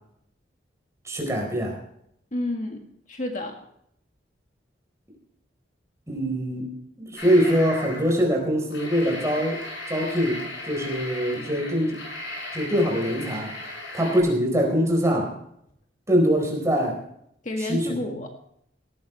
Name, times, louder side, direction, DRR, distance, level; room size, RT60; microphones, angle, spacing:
voice 1, 1.0-1.8 6.1-6.7 7.0-9.6 9.9-12.0 12.5-13.5 13.9-15.3 16.1-17.0 17.6-18.2, equal, 15° right, 1 dB, 4.3 m, -23 dB
voice 2, 2.3-2.8 3.1-3.6 17.4-18.3, left 2 dB, 40° left, 3 dB, 1.8 m, -29 dB
sound 1, 7.2-8.2 8.6-14.2, left 1 dB, 75° left, 6.8 m, -36 dB
18.0 x 14.0 x 3.3 m, 0.72 s
head